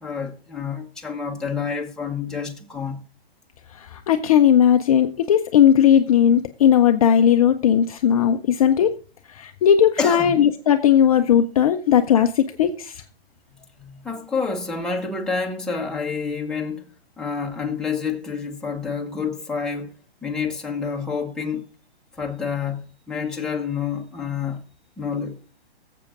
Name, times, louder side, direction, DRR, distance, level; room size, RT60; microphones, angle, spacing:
voice 1, 0.0-3.0 10.0-10.4 13.5-16.8 17.2-19.9 20.2-21.6 22.2-22.8 23.1-24.6 25.0-25.4, left 5 dB, ahead, 1.0 m, -28 dB
voice 2, 3.9-8.9 9.3-13.0, left 9 dB, 35° left, 0.5 m, -17 dB
22.0 x 7.5 x 2.5 m
hypercardioid pair, 135°, 31 cm